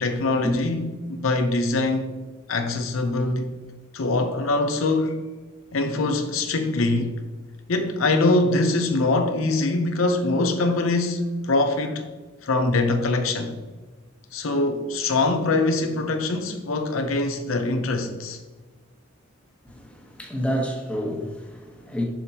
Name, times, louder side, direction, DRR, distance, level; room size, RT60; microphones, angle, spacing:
voice 1, 0.0-2.1 2.5-3.5 3.9-5.2 5.7-7.2 7.7-12.1 12.4-13.6 14.3-18.4, left 2 dB, 90° left, 0.7 m, -23 dB
voice 2, 19.6-22.0, equal, 5° left, 1.1 m, -29 dB
7.3 x 5.3 x 2.8 m
head